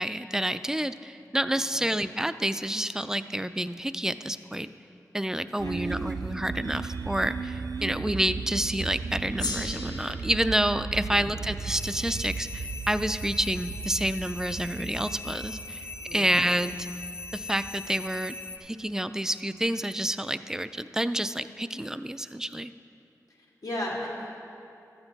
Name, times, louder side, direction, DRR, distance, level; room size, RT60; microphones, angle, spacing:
voice 1, 0.0-4.7 5.1-15.8 16.1-16.8 17.3-18.4 18.6-22.7, right 1 dB, 10° right, 12 dB, 0.3 m, -29 dB
sound 1, 5.6-18.5, right 4 dB, 80° right, 0.4 m, -36 dB
Gong, 9.4-14.1, left 3 dB, 90° left, 0.9 m, -40 dB
sound 2, 11.8-18.6, left 3 dB, 40° left, 0.9 m, -41 dB
voice 2, 16.1-16.4 23.6-24.4, left 1 dB, 70° left, -3 dB, 1.8 m, -35 dB
13.0 x 8.1 x 4.0 m, 2.7 s
wide cardioid pair, 70°, 7 cm